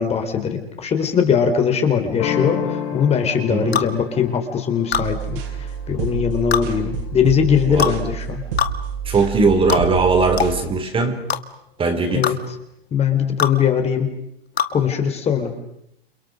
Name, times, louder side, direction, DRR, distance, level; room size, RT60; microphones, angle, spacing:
voice 1, 0.0-8.4 12.1-12.4 12.9-14.1 14.7-15.5, left 7 dB, 20° left, 6 dB, 3.8 m, -20 dB
sound 1, 2.2-7.7, left 9 dB, 35° left, 4.0 m, -31 dB
voice 2, 3.5-3.8 7.7-7.9 9.0-11.2 11.8-12.3, right 3 dB, 15° right, 6 dB, 4.2 m, -19 dB
sound 2, 3.7-3.9 4.9-5.1 6.5-6.7 7.8-8.0 8.6-8.7 9.7-9.9 10.4-10.5 11.3-11.4 12.2-12.4 13.4-13.6 14.6-14.7, left 8 dB, 85° left, 2.2 m, -21 dB
sound 3, 4.9-10.6, right 7 dB, 60° right, 7.5 m, -29 dB
29.5 x 28.5 x 6.5 m, 0.79 s
hypercardioid pair, 125°, 31 cm